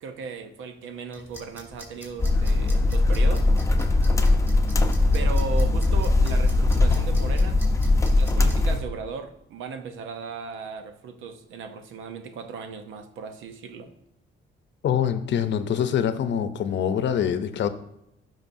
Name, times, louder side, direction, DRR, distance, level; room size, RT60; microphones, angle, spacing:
voice 1, 0.0-3.5 5.1-7.6 8.2-13.9, right 5 dB, 80° right, 8 dB, 0.8 m, -36 dB
sound 1, 1.1-8.5, equal, 10° right, 3.0 m, -46 dB
sound 2, 2.2-8.8, left 2 dB, 15° left, 0.8 m, -20 dB
voice 2, 14.8-17.7, left 8 dB, 65° left, 10 dB, 0.7 m, -24 dB
12.5 x 5.5 x 2.7 m, 0.81 s
cardioid pair, 90°, 20 cm